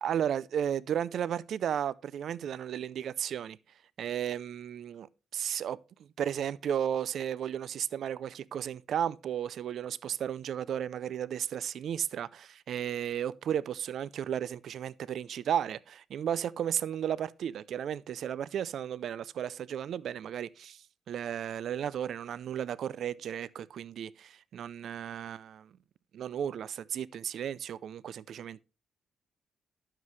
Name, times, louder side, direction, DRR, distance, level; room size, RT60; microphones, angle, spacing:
voice 1, 0.0-3.6 4.0-5.1 5.3-5.8 6.2-25.7 26.1-28.6, right 9 dB, 70° right, 0.4 m, -34 dB
11.0 x 7.4 x 3.2 m
cardioid pair, 115°, 0 cm